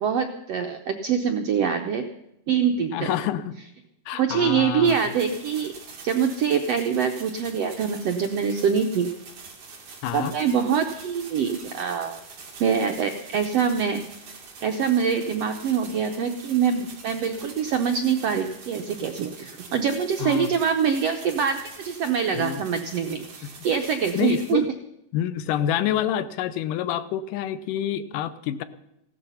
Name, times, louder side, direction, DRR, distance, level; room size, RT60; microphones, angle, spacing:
voice 1, 0.0-2.0 2.5-3.1 4.1-5.7 6.0-9.1 10.1-12.2 12.6-14.0 14.6-24.6, right 7 dB, 80° right, 5 dB, 1.4 m, -24 dB
voice 2, 2.9-3.6 4.1-5.0 10.0-10.3 20.2-20.5 22.4-22.6 24.2-24.7 25.1-28.6, left 10 dB, 80° left, 14 dB, 2.2 m, -27 dB
sound 1, 4.8-24.5, right 4 dB, 50° right, 3.3 m, -44 dB
16.5 x 12.5 x 5.6 m, 0.85 s
omnidirectional pair, 3.9 m